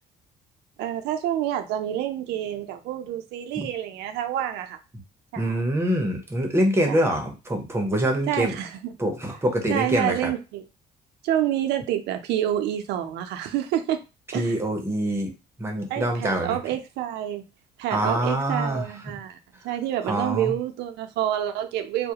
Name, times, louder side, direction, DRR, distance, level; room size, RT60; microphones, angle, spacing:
voice 1, 0.8-4.8 5.3-5.6 6.9-7.0 8.3-8.9 9.7-10.6 11.2-14.0 14.3-14.5 15.9-17.4 17.8-19.4 19.6-22.1, right 11 dB, 80° right, 0.5 m, -28 dB
voice 2, 5.4-8.6 9.0-10.3 14.3-15.3 15.6-16.6 17.9-18.9 20.0-20.6, right 1 dB, 15° right, 0.7 m, -25 dB
2.3 x 2.1 x 2.8 m
cardioid pair, 110°, 17 cm